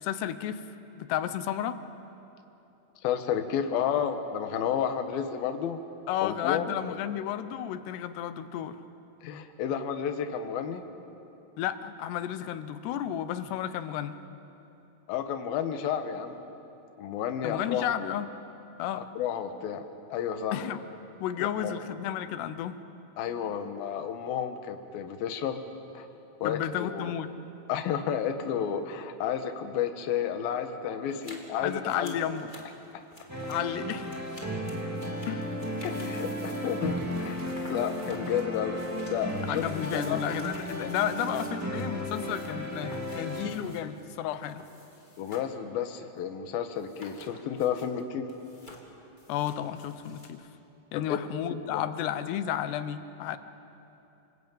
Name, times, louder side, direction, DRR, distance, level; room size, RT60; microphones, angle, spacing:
voice 1, 0.0-0.6 1.0-1.8 6.1-8.8 11.6-14.2 17.4-18.3 18.8-19.0 20.5-20.9 21.2-22.8 26.4-27.3 31.6-32.5 33.5-34.1 35.3-35.5 39.5-44.6 49.3-50.4 50.9-53.4, left 10 dB, 85° left, 12 dB, 3.0 m, -32 dB
voice 2, 3.0-5.8 6.2-6.7 9.2-10.8 15.1-16.4 17.0-17.9 19.0-19.8 20.1-20.6 21.4-21.7 23.2-25.6 25.9-26.1 26.4-27.1 27.7-32.1 35.8-38.8 39.1-40.2 40.8-40.9 45.2-48.3 50.9-51.2 51.6-51.8, left 8 dB, 70° left, 7 dB, 2.9 m, -31 dB
sound 1, 31.1-45.6 45.9-46.0 46.8-48.0 48.3-50.3, left 1 dB, 15° left, 1.9 m, -51 dB
sound 2, 33.3-43.5, equal, 5° right, 1.3 m, -34 dB
28.5 x 20.0 x 8.9 m, 2.9 s
omnidirectional pair, 4.7 m